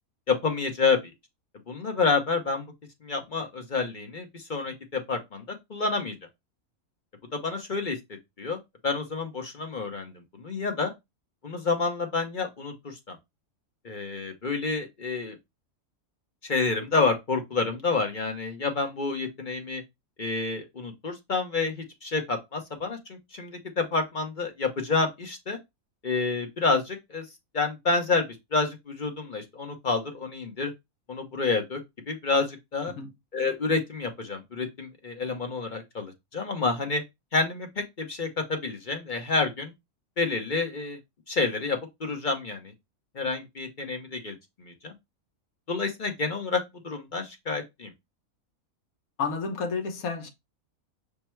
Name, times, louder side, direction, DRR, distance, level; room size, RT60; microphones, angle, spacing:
voice 1, 0.3-1.1 1.7-2.7 3.0-6.1 7.3-8.0 8.4-10.9 11.4-13.2 13.8-15.4 16.4-19.8 20.2-25.6 26.0-27.2 27.5-30.7 31.1-31.8 32.1-32.9 33.3-37.0 37.3-39.7 40.2-41.0 41.3-42.7 43.1-44.9 45.7-47.9, left 4 dB, 40° left, 0.9 m, -29 dB
voice 2, 49.2-50.3, left 5 dB, 75° left, 1.4 m, -31 dB
5.5 x 2.1 x 4.4 m
omnidirectional pair, 1.5 m